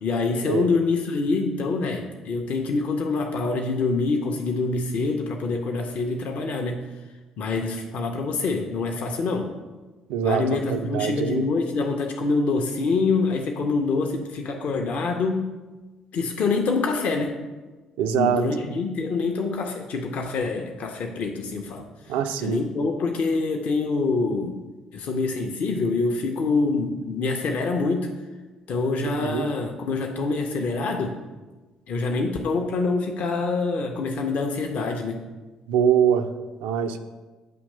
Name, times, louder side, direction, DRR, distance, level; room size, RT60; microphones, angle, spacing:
voice 1, 0.0-6.8 7.4-9.5 10.2-15.5 16.1-17.4 18.1-24.6 24.9-28.1 28.7-31.2 31.9-35.2, left 3 dB, 50° left, 2 dB, 0.5 m, -25 dB
voice 2, 10.1-11.4 18.0-18.4 22.1-22.6 29.0-29.5 35.7-36.3 36.6-37.0, right 8 dB, 65° right, 8 dB, 0.4 m, -23 dB
7.6 x 2.9 x 5.2 m, 1.2 s
figure-of-eight pair, 45°, 3 cm